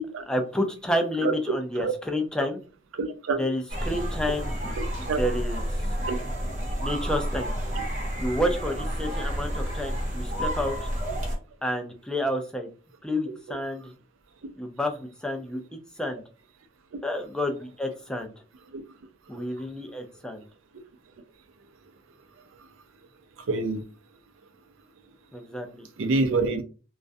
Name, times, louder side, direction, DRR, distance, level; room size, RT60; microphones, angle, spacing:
voice 1, 0.3-2.6 3.4-4.5 5.0-5.6 6.8-7.5 8.2-10.9 11.6-12.7 13.0-13.9 14.6-15.6 16.0-16.2 17.0-18.3 19.3-20.5 25.3-25.9, left 1 dB, 5° left, 0.4 m, -29 dB
voice 2, 2.9-3.4 4.8-5.2 6.1-6.2 13.5-13.6 18.7-18.8 23.5-23.8 26.0-26.6, right 3 dB, 75° right, 0.5 m, -26 dB
sound 1, 3.7-11.4, equal, 40° right, 0.7 m, -30 dB
2.3 x 2.1 x 2.6 m
head